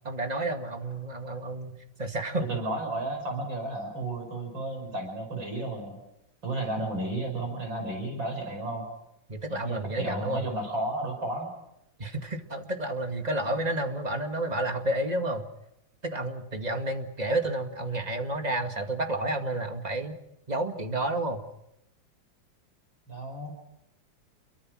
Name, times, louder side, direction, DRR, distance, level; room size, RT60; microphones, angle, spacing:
voice 1, 0.0-2.5 9.3-10.4 12.0-15.4 16.0-20.2 20.5-21.4, right 1 dB, 20° right, 5 dB, 2.1 m, -30 dB
voice 2, 2.4-6.0 6.4-8.9 9.6-11.5 13.3-13.5 23.1-23.5, right 2 dB, 75° right, 3 dB, 6.2 m, -33 dB
29.0 x 23.0 x 6.4 m, 0.84 s
omnidirectional pair, 2.1 m